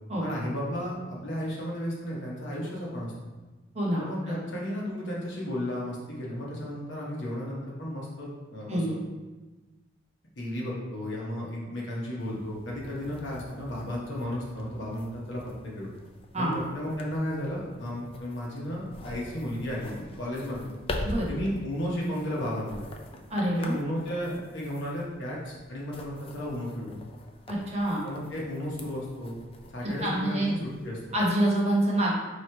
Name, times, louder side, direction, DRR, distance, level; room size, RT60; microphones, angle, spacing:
voice 1, 0.2-3.1 4.0-9.0 10.4-15.9 16.3-20.7 21.3-22.8 23.6-27.0 28.0-29.4 29.7-31.0, equal, 65° left, -4 dB, 1.0 m, -34 dB
voice 2, 3.7-4.4 8.7-8.9 16.3-16.6 21.0-21.3 23.3-23.8 27.5-28.0 29.8-30.5 31.1-32.2, right 1 dB, 35° right, -4 dB, 0.9 m, -26 dB
sound 1, 12.2-31.3, left 1 dB, 30° left, 0.3 m, -44 dB
3.1 x 2.9 x 4.4 m, 1.2 s
head